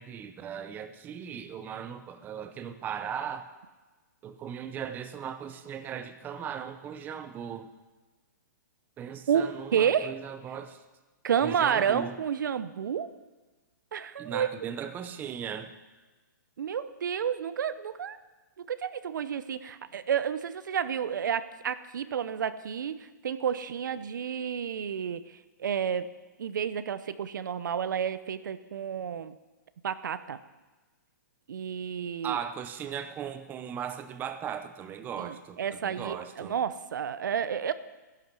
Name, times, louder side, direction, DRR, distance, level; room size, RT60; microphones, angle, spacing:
voice 1, 0.0-3.5 4.2-7.7 9.0-10.8 11.4-12.2 14.2-15.7 32.2-36.6, right 8 dB, 15° right, 9 dB, 0.8 m, -38 dB
voice 2, 9.3-10.2 11.2-13.1 13.9-14.5 16.6-18.2 18.6-26.1 26.4-29.4 29.8-30.4 31.5-32.4 35.2-37.7, right 8 dB, 75° right, 13 dB, 0.7 m, -30 dB
13.5 x 11.0 x 6.2 m, 1.2 s
hypercardioid pair, 145°, 10 cm